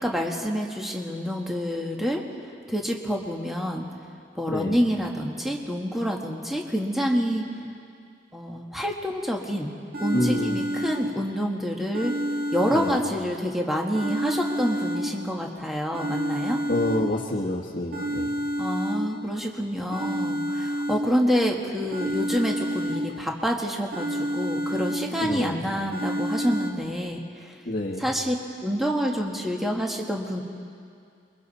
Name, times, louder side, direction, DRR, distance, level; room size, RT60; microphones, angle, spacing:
voice 1, 0.0-2.2 2.7-3.9 4.3-7.5 8.3-9.7 10.0-12.1 12.5-16.6 18.6-27.5 28.0-28.3 28.6-30.4, equal, ahead, 0 dB, 1.5 m, -27 dB
voice 2, 4.5-4.8 10.1-10.5 12.7-13.0 16.7-18.4 25.2-25.6 27.6-28.1, left 1 dB, 45° left, -4 dB, 1.4 m, -27 dB
sound 1, 9.9-11.5 11.9-13.5 13.9-15.5 15.9-17.5 17.9-19.5 19.9-21.5 21.9-23.5 23.9-25.5 25.9-26.7, equal, 50° right, 1.6 m, -30 dB
27.5 x 23.0 x 4.2 m, 2.4 s
head